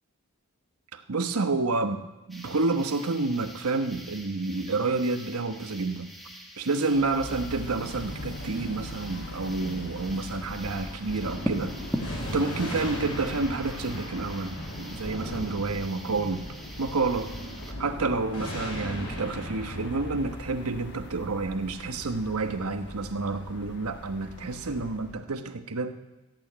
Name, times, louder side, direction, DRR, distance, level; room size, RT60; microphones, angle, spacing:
voice 1, 0.9-2.0 2.3-6.1 6.6-16.4 16.8-17.3 17.8-25.9, right 3 dB, 90° right, 8 dB, 1.1 m, -29 dB
sound 1, 2.3-17.7, equal, ahead, 1.5 m, -42 dB
sound 2, 6.9-25.2, left 1 dB, 50° left, 1.3 m, -42 dB
Thunder, 11.0-21.9, equal, 90° left, 6.1 m, -38 dB
14.5 x 8.9 x 8.7 m, 1.0 s
head